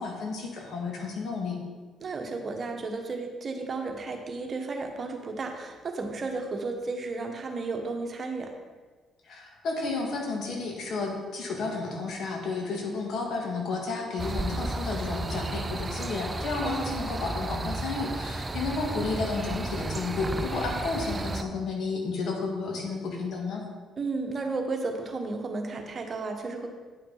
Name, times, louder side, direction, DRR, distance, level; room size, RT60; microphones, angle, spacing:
voice 1, 0.0-1.6 9.2-23.6, left 3 dB, 65° left, 0 dB, 1.8 m, -32 dB
voice 2, 2.0-8.5 16.6-17.2 24.0-26.7, right 3 dB, 45° right, 3 dB, 1.2 m, -33 dB
sound 1, 14.2-21.4, right 2 dB, 30° right, 0.5 m, -33 dB
9.4 x 5.9 x 4.0 m, 1.4 s
supercardioid pair, 65°, 0 cm